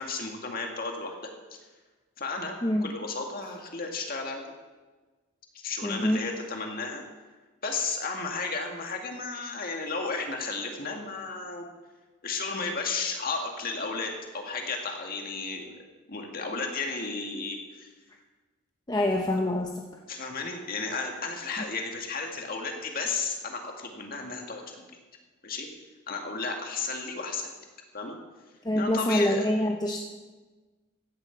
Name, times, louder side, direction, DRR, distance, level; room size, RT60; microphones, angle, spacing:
voice 1, 0.0-1.3 2.2-2.6 2.8-4.4 5.5-7.0 7.6-11.7 12.2-15.7 16.1-17.9 20.1-24.8 25.4-25.7 26.1-27.5 27.9-28.2 28.7-29.5, left 4 dB, 45° left, 2 dB, 1.9 m, -33 dB
voice 2, 5.8-6.2 18.9-19.8 28.6-30.0, left 1 dB, 20° left, 1 dB, 0.7 m, -25 dB
15.5 x 11.0 x 4.6 m, 1.3 s
head